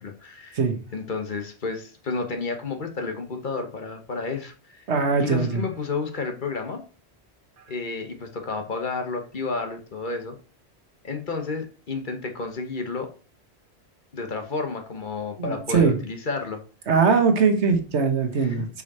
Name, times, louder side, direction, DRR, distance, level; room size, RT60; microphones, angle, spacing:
voice 1, 0.0-0.6 0.9-4.9 5.2-6.8 7.7-10.3 11.0-13.1 14.1-16.6 18.4-18.7, left 4 dB, 50° left, 5 dB, 1.1 m, -31 dB
voice 2, 4.9-5.6 15.4-16.0 16.9-18.8, right 5 dB, 85° right, 6 dB, 1.4 m, -21 dB
5.5 x 4.8 x 4.2 m, 0.39 s
omnidirectional pair, 1.1 m